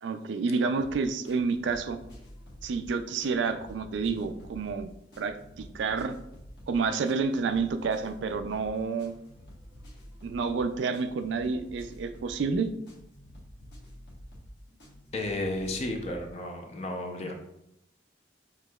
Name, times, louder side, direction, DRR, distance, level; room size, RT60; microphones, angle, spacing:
voice 1, 0.0-2.0 2.6-4.9 5.2-6.2 6.7-9.2 10.2-12.7 17.2-17.3, right 4 dB, 75° right, 9 dB, 0.3 m, -29 dB
sound 1, 0.8-16.2, equal, 55° left, 1.3 m, -49 dB
voice 2, 15.1-17.3, left 1 dB, 35° left, 3 dB, 0.5 m, -33 dB
5.9 x 2.9 x 2.3 m, 0.81 s
head